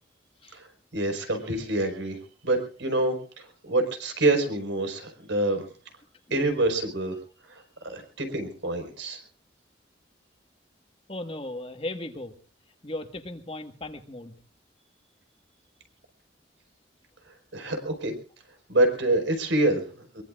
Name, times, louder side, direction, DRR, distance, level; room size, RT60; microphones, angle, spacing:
voice 1, 0.9-5.7 6.3-7.2 7.4-9.2 17.5-18.1 18.7-20.2, right 2 dB, 90° right, 6 dB, 5.1 m, -27 dB
voice 2, 11.1-12.3 12.8-14.4, left 1 dB, 30° left, 6 dB, 1.5 m, -36 dB
23.0 x 23.0 x 2.5 m, 0.40 s
head